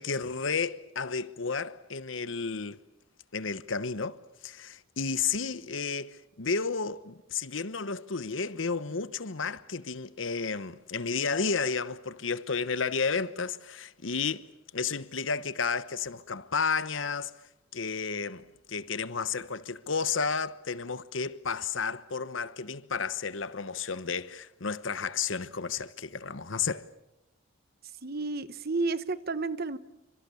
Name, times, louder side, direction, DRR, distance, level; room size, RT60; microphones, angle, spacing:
voice 1, 0.0-2.8 3.3-14.5 14.7-17.3 17.7-26.9, left 5 dB, 85° left, 1.1 m, -32 dB
voice 2, 28.0-29.8, right 3 dB, 55° right, 1.2 m, -31 dB
30.0 x 25.5 x 7.1 m
head